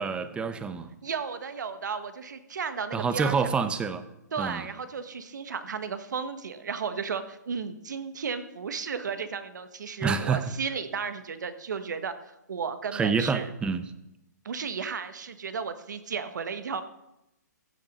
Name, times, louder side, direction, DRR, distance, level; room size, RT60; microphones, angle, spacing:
voice 1, 0.0-0.9 2.9-4.0 4.4-4.7 10.0-10.5 12.9-13.8, right 5 dB, 10° right, 12 dB, 0.8 m, -27 dB
voice 2, 1.0-3.3 4.3-12.1 12.5-13.5 14.4-16.8, right 6 dB, 75° right, 10 dB, 1.3 m, -34 dB
15.0 x 7.0 x 5.3 m, 0.89 s
hypercardioid pair, 140°, 10 cm